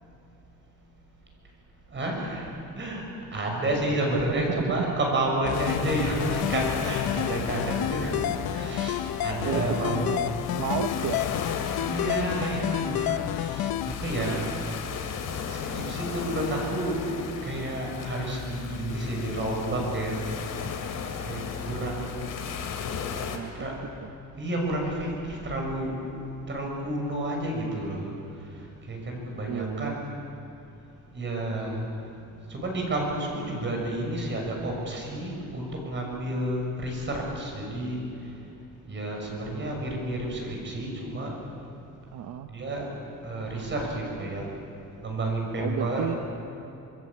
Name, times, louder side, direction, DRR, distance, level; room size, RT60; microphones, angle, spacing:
voice 1, 1.9-2.5 2.8-3.0 3.3-8.2 8.5-10.5 11.7-14.4 15.5-17.0 17.4-20.3 21.2-22.3 23.5-23.8 24.4-25.9 26.5-28.0 28.9-30.2 31.1-31.8 32.5-38.0 38.9-41.4 42.5-42.9 43.2-44.4 45.0-46.1, right 1 dB, 35° right, 0 dB, 6.5 m, -30 dB
voice 2, 4.1-4.9 9.5-11.2 23.3-23.5 24.0-24.1 29.5-30.0 42.1-42.5 45.6-46.2, right 10 dB, 65° right, 6 dB, 1.0 m, -32 dB
sound 1, 5.4-13.9, left 12 dB, 85° left, 0.8 m, -30 dB
sound 2, 5.5-23.4, left 7 dB, 60° left, 3.0 m, -35 dB
26.0 x 21.5 x 8.7 m, 2.8 s
cardioid pair, 165°, 35 cm